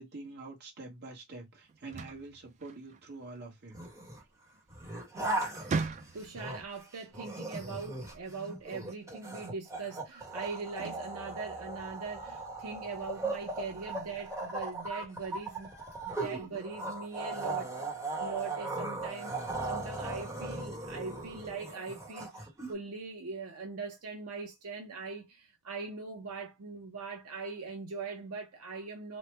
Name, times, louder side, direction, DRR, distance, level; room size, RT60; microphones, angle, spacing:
voice 1, 0.0-3.8 4.2-4.3, right 3 dB, 50° right, 1.0 m, -46 dB
sound 1, 1.7-3.2 4.7-4.9 5.3-6.5, right 4 dB, 35° right, 0.3 m, -37 dB
sound 2, 3.7-4.2 4.7-6.8 7.1-22.7, right 2 dB, 15° right, 1.0 m, -38 dB
voice 2, 5.6-15.7 16.0-17.7 18.2-29.2, right 4 dB, 75° right, 0.6 m, -41 dB
3.1 x 2.0 x 3.2 m
head